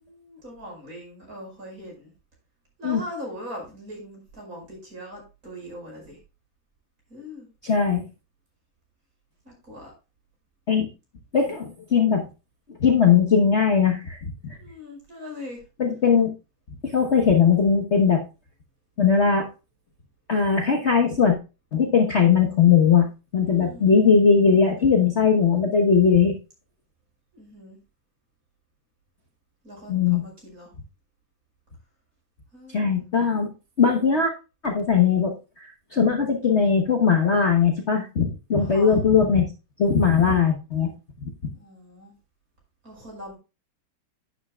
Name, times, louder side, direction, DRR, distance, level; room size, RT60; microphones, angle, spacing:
voice 1, 0.1-2.1 2.8-6.2 7.1-7.5 9.4-9.9 14.6-15.6 23.5-23.9 27.3-27.8 29.6-30.7 32.5-32.9 38.5-39.0 41.5-42.1 42.8-43.3, equal, 45° right, -1 dB, 5.7 m, -40 dB
voice 2, 7.6-8.0 10.7-10.9 11.3-12.3 12.8-14.2 14.4-14.5 15.8-16.3 16.8-18.2 19.0-19.5 20.3-21.4 21.7-23.1 23.3-26.4 29.9-30.2 32.7-33.5 33.8-34.3 34.6-39.5 39.8-40.9 41.2-41.3, left 6 dB, 40° left, 1 dB, 1.2 m, -19 dB
11.0 x 8.7 x 2.3 m, 0.29 s
omnidirectional pair, 2.1 m